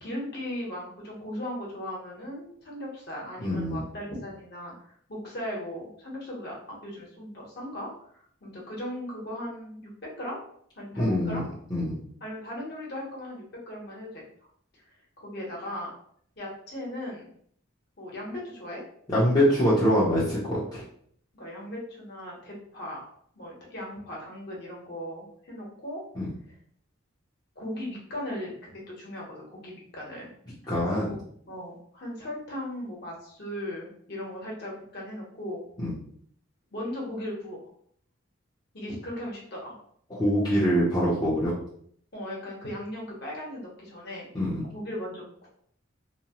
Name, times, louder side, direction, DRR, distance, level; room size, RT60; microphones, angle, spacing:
voice 1, 0.0-4.7 5.1-6.5 6.8-7.9 8.4-9.9 10.2-10.4 10.8-11.5 12.2-14.2 15.2-15.9 16.4-17.3 18.0-18.8 21.3-23.1 23.3-26.0 26.5-26.6 27.6-30.3 30.9-31.2 31.5-35.6 36.7-37.6 38.7-39.8 42.1-45.5, left 1 dB, 50° left, -3 dB, 0.9 m, -37 dB
voice 2, 3.4-3.8 11.0-11.4 11.7-12.0 19.1-20.8 26.2-26.3 30.7-31.1 35.8-36.0 40.1-41.5 44.3-44.7, equal, 20° left, -9 dB, 0.6 m, -24 dB
2.8 x 2.0 x 2.8 m, 0.64 s
head